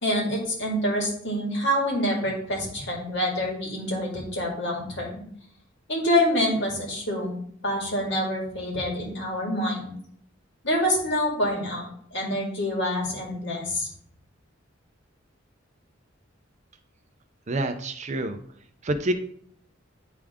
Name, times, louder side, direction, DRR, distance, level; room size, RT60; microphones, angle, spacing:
voice 1, 0.0-5.2 5.9-7.4 7.6-9.9 10.6-13.9, equal, 65° left, -1 dB, 2.1 m, -26 dB
voice 2, 17.5-18.4 18.8-19.1, right 1 dB, 35° right, 8 dB, 0.5 m, -27 dB
9.6 x 3.6 x 3.6 m, 0.62 s
head